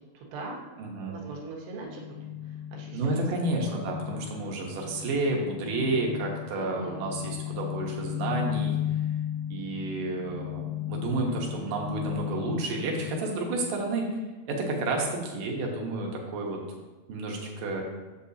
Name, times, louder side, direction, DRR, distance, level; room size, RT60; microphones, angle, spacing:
voice 1, 0.1-0.6 1.1-2.2 2.4-3.1 3.5-3.8 6.5-7.3, right 3 dB, 85° right, -1 dB, 3.4 m, -41 dB
voice 2, 0.8-1.2 2.9-8.8 9.5-14.2 14.5-16.6 17.1-17.8, right 2 dB, 65° right, 0 dB, 2.3 m, -30 dB
sound 1, 1.8-13.1, left 11 dB, 70° left, 2.4 m, -35 dB
8.6 x 7.4 x 2.8 m, 1.3 s
omnidirectional pair, 4.8 m